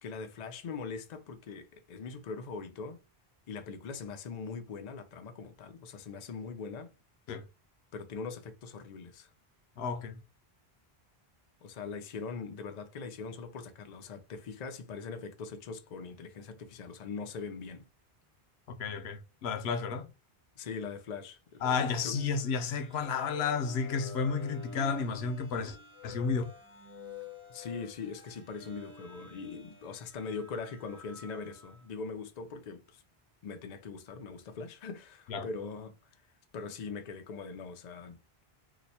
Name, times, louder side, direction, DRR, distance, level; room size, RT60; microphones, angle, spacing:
voice 1, 0.0-3.0 3.5-6.9 7.9-9.3 11.6-17.9 20.6-22.2 27.5-33.0 33.4-36.0 36.5-38.4, left 5 dB, 50° left, 0.6 m, -41 dB
voice 2, 9.8-10.2 18.7-20.1 21.6-25.8 26.0-26.5 35.3-35.5, left 5 dB, 85° left, 0.9 m, -32 dB
sound 1, 21.6-31.9, left 4 dB, 15° left, 0.7 m, -49 dB
2.9 x 2.1 x 4.1 m
omnidirectional pair, 1.0 m